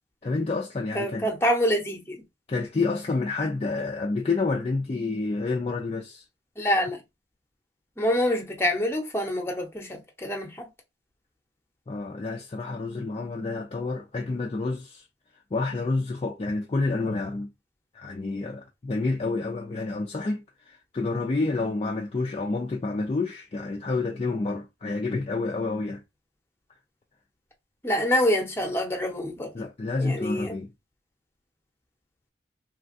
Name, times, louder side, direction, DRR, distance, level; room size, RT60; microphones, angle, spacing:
voice 1, 0.2-1.3 2.5-6.2 11.9-15.0 15.5-17.5 17.9-26.0 29.5-30.7, left 3 dB, 35° left, 0.4 m, -29 dB
voice 2, 0.9-2.2 6.6-7.0 8.0-10.7 27.8-29.5 30.0-30.6, equal, 15° left, 0.8 m, -26 dB
3.1 x 2.3 x 2.5 m
head